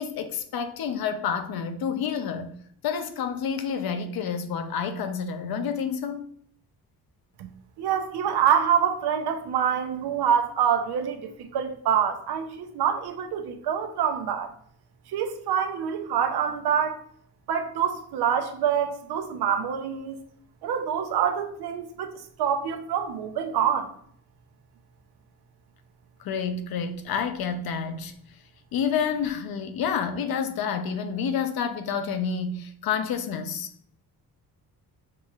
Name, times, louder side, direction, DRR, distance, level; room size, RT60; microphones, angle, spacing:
voice 1, 0.0-2.5 2.8-6.3 26.2-28.1 28.7-33.7, left 6 dB, 70° left, 0.6 m, -29 dB
voice 2, 7.8-14.5 15.1-17.0 17.5-20.2 20.6-22.1 22.4-23.9, right 8 dB, 90° right, 0.7 m, -26 dB
5.7 x 3.1 x 2.4 m
cardioid pair, 135°, 38 cm